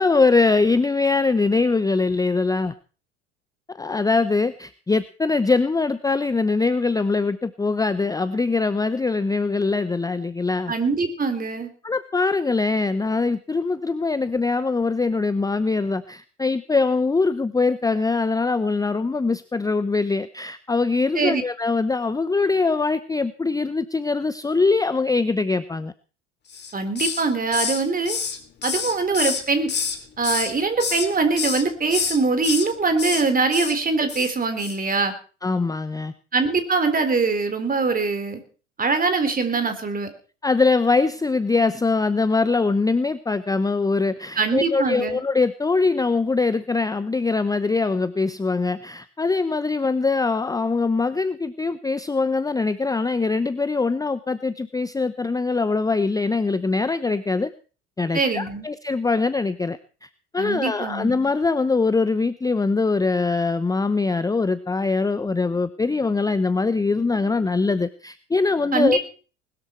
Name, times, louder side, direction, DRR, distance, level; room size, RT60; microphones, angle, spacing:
voice 1, 0.0-2.7 3.7-10.7 11.8-25.9 35.4-36.1 39.6-39.7 40.4-57.5 58.0-69.0, left 3 dB, 10° left, 14 dB, 0.8 m, -22 dB
voice 2, 10.7-11.7 21.1-21.4 26.7-28.2 28.6-29.7 30.2-35.1 36.3-38.4 38.8-40.1 44.4-45.2 58.1-58.7 60.4-61.2 68.7-69.0, right 4 dB, 25° right, 9 dB, 3.8 m, -23 dB
Hiss, 26.5-27.3 27.5-30.0 30.2-31.1 31.4-31.6 31.9-32.7 33.0-33.2 33.5-33.8 34.1-34.3 34.6-34.8, left 6 dB, 30° left, 2.9 m, -27 dB
20.5 x 13.0 x 4.5 m, 0.38 s
figure-of-eight pair, 70°, 36 cm